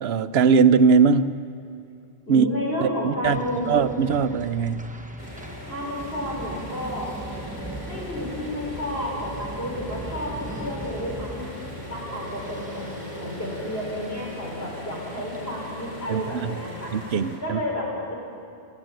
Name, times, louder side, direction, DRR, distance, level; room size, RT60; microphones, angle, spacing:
voice 1, 0.0-1.4 2.3-2.5 2.8-3.4 3.7-4.9 16.1-16.6 16.9-17.6, right 5 dB, 85° right, 12 dB, 1.0 m, -20 dB
voice 2, 2.3-3.8 5.7-7.1 7.9-11.5 11.9-12.8 13.1-16.9 17.4-18.1, left 1 dB, 75° left, -3 dB, 5.9 m, -31 dB
sound 1, 3.2-15.5, right 1 dB, 10° right, 1.0 m, -41 dB
sound 2, 5.2-17.4, equal, 45° left, 6.5 m, -38 dB
28.5 x 13.5 x 9.1 m, 2.5 s
omnidirectional pair, 1.0 m